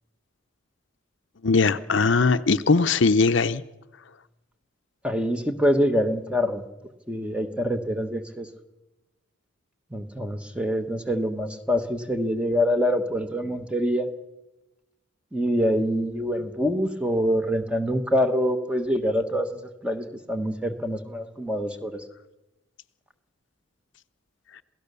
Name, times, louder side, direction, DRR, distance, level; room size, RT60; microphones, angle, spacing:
voice 1, 1.4-3.6, left 4 dB, 60° left, 12 dB, 0.7 m, -20 dB
voice 2, 5.0-6.6 7.1-8.5 9.9-14.1 15.3-22.0, equal, 5° right, 7 dB, 1.2 m, -25 dB
27.5 x 17.0 x 6.9 m, 1.0 s
head